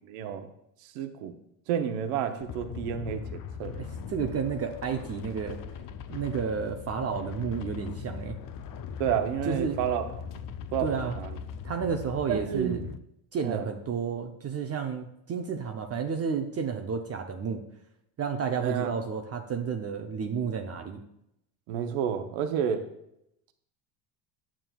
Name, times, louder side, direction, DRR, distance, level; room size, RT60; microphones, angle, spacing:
voice 1, 0.1-0.5 0.8-1.3 1.7-3.7 9.0-10.0 10.7-11.4 12.3-12.8 13.4-13.7 18.6-18.9 21.7-22.8, right 8 dB, 75° right, 7 dB, 0.9 m, -30 dB
sound 1, 2.4-13.0, left 6 dB, 45° left, 0.5 m, -40 dB
voice 2, 3.8-5.6 6.1-8.4 9.5-9.8 10.8-11.2 11.6-12.9 13.3-17.6 18.2-21.0, right 6 dB, 30° right, 4 dB, 0.6 m, -31 dB
9.1 x 7.4 x 2.3 m, 0.80 s
supercardioid pair, 100°, 49 cm